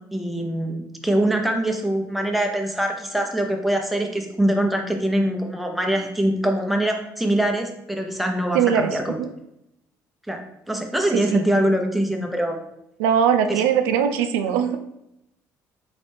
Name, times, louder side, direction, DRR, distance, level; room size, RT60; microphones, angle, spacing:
voice 1, 0.1-9.2 10.3-12.6 13.5-13.6, right 1 dB, ahead, 3 dB, 0.8 m, -23 dB
voice 2, 8.5-9.3 11.1-11.4 13.0-14.8, right 8 dB, 85° right, 7 dB, 0.4 m, -21 dB
4.0 x 3.3 x 3.4 m, 0.83 s
supercardioid pair, 70°, 8 cm